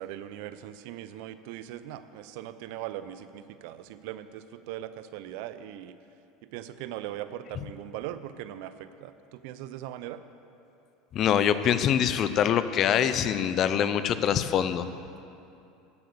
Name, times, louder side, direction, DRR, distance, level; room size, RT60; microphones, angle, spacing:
voice 1, 0.0-5.9 6.5-10.2, right 12 dB, 70° right, 12 dB, 0.5 m, -40 dB
voice 2, 11.1-14.9, left 9 dB, 50° left, 12 dB, 0.6 m, -24 dB
12.0 x 7.9 x 6.8 m, 2.6 s
hypercardioid pair, 85°, 0 cm